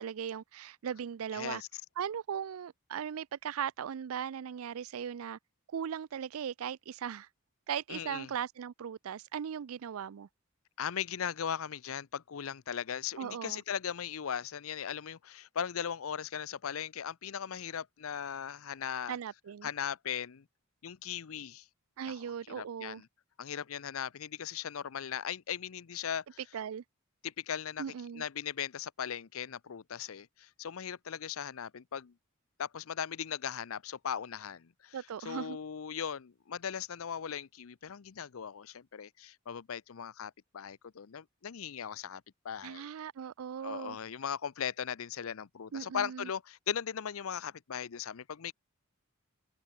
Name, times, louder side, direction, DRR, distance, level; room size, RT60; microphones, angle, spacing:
voice 1, 0.0-1.6 2.0-5.4 5.7-7.3 7.7-10.3 13.2-13.6 19.1-19.7 22.0-23.0 26.5-26.8 27.8-28.2 34.9-35.6 42.6-44.0 45.7-46.3, right 8 dB, 80° right, 0.4 m, -38 dB
voice 2, 1.3-1.7 7.9-8.3 10.8-19.2 19.6-20.5 20.8-21.7 22.1-23.1 23.4-26.4 27.2-27.8 28.1-32.1 32.6-42.9 43.6-48.5, left 8 dB, 75° left, 0.6 m, -38 dB
open air
head